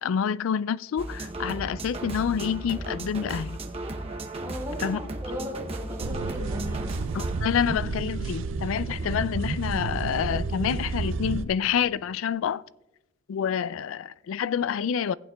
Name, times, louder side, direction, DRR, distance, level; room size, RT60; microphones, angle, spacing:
voice 1, 0.0-3.6 4.8-5.0 7.1-12.6 13.3-15.1, left 8 dB, 75° left, 0.3 m, -28 dB
sound 1, 1.0-7.4, right 2 dB, 30° right, 0.7 m, -35 dB
voice 2, 4.4-7.0, left 1 dB, 15° right, 3.6 m, -37 dB
sound 2, 6.0-11.4, right 3 dB, 70° right, 0.5 m, -31 dB
17.5 x 8.8 x 2.3 m
head